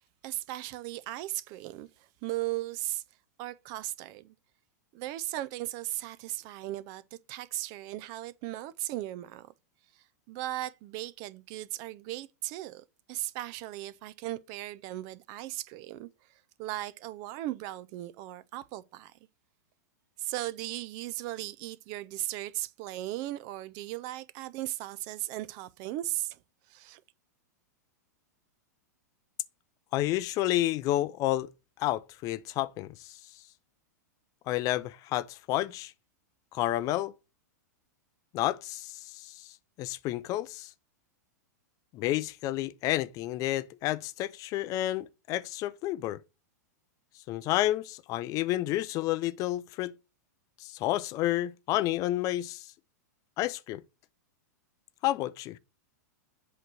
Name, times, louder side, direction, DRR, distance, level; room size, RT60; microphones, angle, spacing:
voice 1, 0.2-1.9 2.2-3.0 3.4-4.3 4.9-9.5 10.3-16.1 16.6-19.1 20.2-26.4 26.7-27.0, right 16 dB, 45° right, 0.5 m, -37 dB
voice 2, 29.9-31.5 31.8-33.2 34.5-35.9 36.5-37.1 38.3-39.5 39.8-40.7 41.9-46.2 47.3-50.0 50.6-52.7 53.4-53.8 55.0-55.6, left 15 dB, 40° left, 0.5 m, -30 dB
7.9 x 3.1 x 6.1 m
hypercardioid pair, 110°, 9 cm